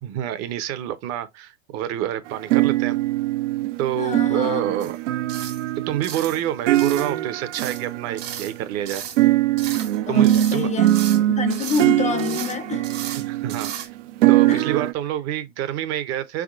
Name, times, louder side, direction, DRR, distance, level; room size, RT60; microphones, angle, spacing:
voice 1, 0.0-3.0 3.8-5.0 5.9-9.0 10.1-10.7 13.3-13.9 14.3-16.4, right 11 dB, 45° right, 0.7 m, -27 dB
sound 1, 2.3-8.7 9.2-14.9, right 15 dB, 80° right, 0.5 m, -22 dB
voice 2, 4.0-4.8 10.1-12.9 14.5-14.6, left 7 dB, 20° left, 0.4 m, -28 dB
sound 2, 4.8-5.0 5.3-5.6 6.0-6.4 6.7-7.1 7.5-7.9 8.2-8.6 8.8-9.2 9.6-10.0 10.2-11.2 11.5-11.9 12.2-12.6 12.8-13.2 13.5-13.9, right 9 dB, 65° right, 1.4 m, -35 dB
4.3 x 3.6 x 2.4 m
hypercardioid pair, 115°, 36 cm